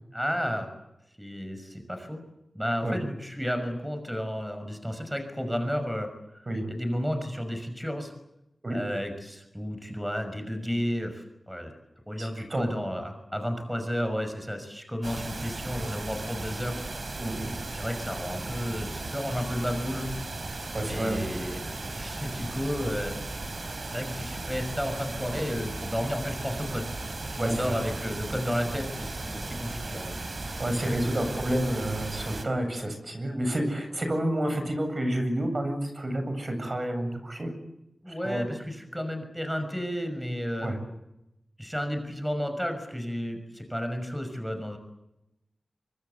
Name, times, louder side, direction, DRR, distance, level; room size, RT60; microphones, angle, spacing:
voice 1, 0.1-0.7 1.2-2.2 2.5-8.1 8.7-11.8 12.1-16.8 17.7-20.1 20.9-23.2 23.9-26.9 27.3-30.2 38.0-40.7 41.6-44.8, equal, ahead, 7 dB, 6.0 m, -32 dB
voice 2, 12.2-12.7 17.2-17.5 20.7-21.2 27.4-27.7 30.6-37.5 38.1-38.4 40.6-40.7, right 1 dB, 45° right, 6 dB, 7.9 m, -29 dB
sound 1, 15.0-32.5, right 2 dB, 60° right, 4.5 m, -36 dB
25.0 x 24.5 x 8.2 m, 0.89 s
wide cardioid pair, 60°, 0 cm